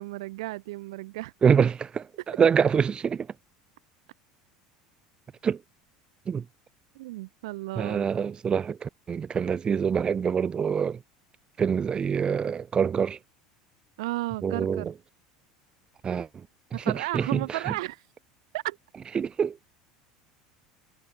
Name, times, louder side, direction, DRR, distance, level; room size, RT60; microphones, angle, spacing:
voice 1, 0.0-1.3 6.9-8.1 14.0-14.9 16.7-18.0 18.5-18.8, right 19 dB, 80° right, 0.8 m, -33 dB
voice 2, 1.4-3.3 5.4-5.6 6.3-6.4 7.8-11.0 11.6-13.2 14.4-14.9 16.0-16.3 16.7-17.6 19.1-19.6, right 7 dB, 30° right, 1.5 m, -25 dB
hypercardioid pair, 90°, 3 cm